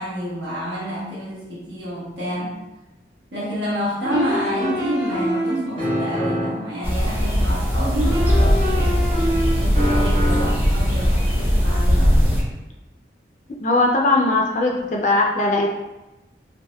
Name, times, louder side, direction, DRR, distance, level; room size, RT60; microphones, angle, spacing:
voice 1, 0.0-2.6 3.3-9.0 9.6-12.4, equal, 80° right, -7 dB, 1.2 m, -28 dB
sound 1, 4.0-6.7 8.0-10.7, equal, 35° right, 0.9 m, -25 dB
sound 2, 6.8-12.4, equal, 10° right, 0.5 m, -19 dB
voice 2, 13.6-15.7, left 2 dB, 45° left, 0 dB, 0.3 m, -19 dB
3.4 x 2.4 x 2.2 m, 1.0 s
head